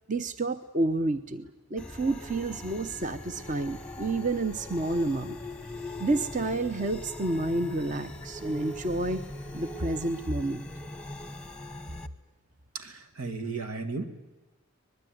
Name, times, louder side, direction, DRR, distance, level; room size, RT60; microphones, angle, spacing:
voice 1, 0.1-5.4 6.0-9.2 9.5-10.6, right 2 dB, 35° right, 10 dB, 0.9 m, -29 dB
sound 1, 1.8-12.1, left 2 dB, 5° left, 1.0 m, -41 dB
voice 2, 12.7-14.0, right 3 dB, 90° right, 7 dB, 2.5 m, -35 dB
24.0 x 21.0 x 9.5 m, 1.1 s
head